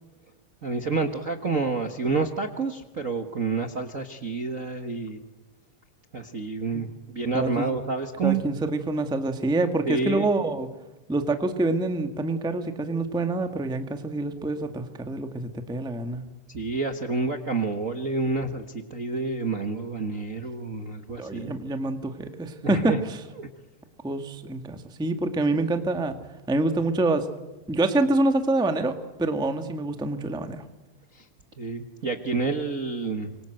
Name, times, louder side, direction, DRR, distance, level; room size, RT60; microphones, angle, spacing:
voice 1, 0.6-5.2 6.1-8.4 9.9-10.3 16.5-21.6 22.6-23.0 23.4-23.5 31.1-31.3 31.6-33.4, right 4 dB, 90° right, 5 dB, 0.7 m, -29 dB
voice 2, 7.3-7.7 8.2-10.7 11.1-16.2 21.2-22.9 24.0-26.2 26.5-27.3 27.7-28.9 29.2-30.6, right 2 dB, 5° right, 7 dB, 0.4 m, -26 dB
26.0 x 23.5 x 7.9 m, 1.1 s
omnidirectional pair, 3.9 m